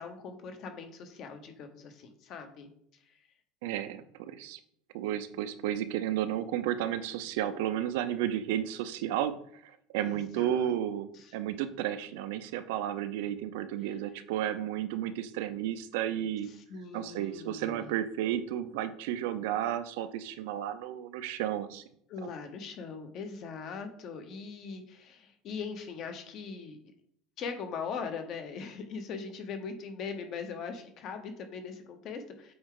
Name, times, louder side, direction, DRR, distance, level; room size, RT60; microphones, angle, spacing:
voice 1, 0.0-2.7 3.1-3.2 10.0-10.7 11.1-11.3 13.8-13.9 16.5-17.9 22.1-26.8 27.4-32.5, left 5 dB, 35° left, 7 dB, 1.0 m, -41 dB
voice 2, 3.6-4.6 4.9-9.4 9.6-16.5 16.9-21.8, right 11 dB, 70° right, 12 dB, 0.6 m, -32 dB
7.9 x 4.6 x 3.8 m, 0.69 s
cardioid pair, 175°, 0 cm